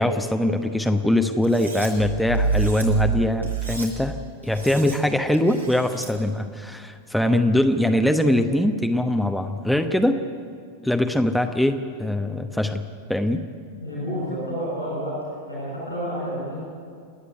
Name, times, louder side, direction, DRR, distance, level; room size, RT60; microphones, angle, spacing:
voice 1, 0.0-4.2 4.4-10.2 10.8-12.8 13.1-13.4, left 1 dB, ahead, 6 dB, 1.0 m, -22 dB
Cutlery silverware, 1.4-1.9 2.3-2.8 3.4-3.9 4.4-5.0 5.3-6.1, right 2 dB, 85° right, 4.4 m, -39 dB
sound 1, 2.0-4.8, right 5 dB, 70° right, 2.6 m, -26 dB
voice 2, 13.8-16.6, equal, 85° left, -5 dB, 7.2 m, -30 dB
28.0 x 9.9 x 9.6 m, 2.2 s
figure-of-eight pair, 90°, 0 cm